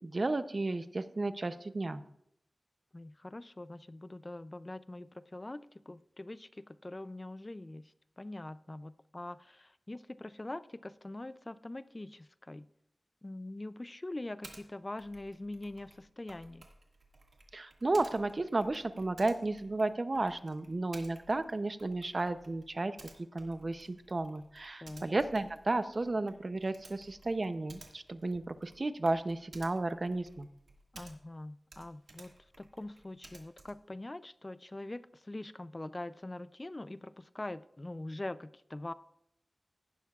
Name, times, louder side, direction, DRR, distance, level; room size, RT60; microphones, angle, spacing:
voice 1, 0.0-2.0 17.5-23.0 23.3-30.5, right 2 dB, 45° right, 12 dB, 0.6 m, -33 dB
voice 2, 2.9-12.7 13.2-16.7 24.8-25.1 30.9-32.3 32.6-38.9, left 2 dB, 25° left, 15 dB, 0.3 m, -43 dB
Typing, 14.4-14.6 15.0-31.4 31.7-33.9, right 2 dB, 85° right, 1.8 m, -57 dB
16.0 x 12.0 x 2.4 m, 0.75 s
wide cardioid pair, 95°, 0 cm